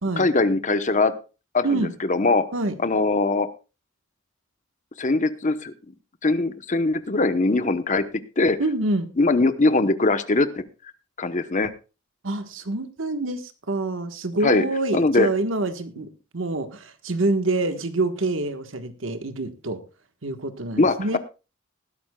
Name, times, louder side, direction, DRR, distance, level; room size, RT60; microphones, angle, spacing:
voice 1, 0.2-1.1 1.5-2.5 2.8-3.5 5.0-5.7 6.2-8.0 8.4-8.6 9.2-10.6 11.2-11.7 14.4-14.6 14.9-15.3 20.8-21.2, left 3 dB, 40° left, 11 dB, 0.9 m, -21 dB
voice 2, 8.6-9.1 12.2-19.8 20.2-21.2, right 2 dB, 70° right, 8 dB, 1.4 m, -26 dB
20.0 x 11.5 x 2.3 m, 0.31 s
head